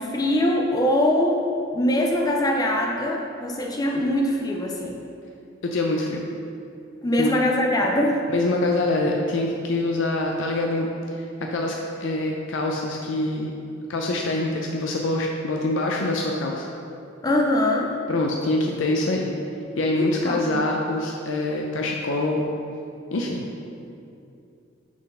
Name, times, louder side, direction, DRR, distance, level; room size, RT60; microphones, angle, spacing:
voice 1, 0.0-1.5 1.7-5.0 7.0-8.3 17.2-17.9 19.9-20.6, left 1 dB, 20° left, 1 dB, 0.4 m, -22 dB
voice 2, 5.6-6.3 7.2-7.3 8.3-13.5 13.9-16.7 18.1-19.3 19.8-22.5 23.1-23.5, left 2 dB, 80° left, 0 dB, 0.5 m, -25 dB
6.0 x 3.9 x 5.5 m, 2.6 s
head